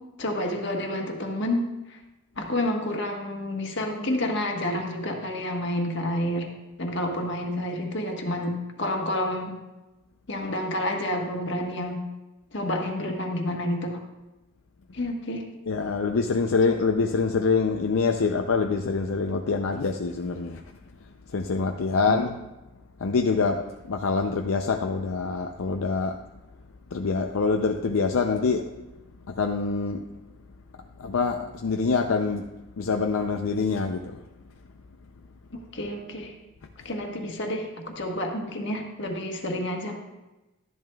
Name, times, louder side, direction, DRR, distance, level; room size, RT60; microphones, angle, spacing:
voice 1, 0.2-2.0 2.4-8.5 8.8-9.6 10.3-12.0 12.5-14.0 14.9-15.4 22.0-22.2 35.5-36.3 36.8-40.0, left 1 dB, 55° left, 2 dB, 1.4 m, -29 dB
voice 2, 15.7-20.6 21.3-22.4 23.0-26.2 26.9-28.7 29.3-30.0 31.0-32.5 32.8-34.2, left 4 dB, 75° left, 3 dB, 0.5 m, -25 dB
12.0 x 10.5 x 2.3 m, 1.0 s
head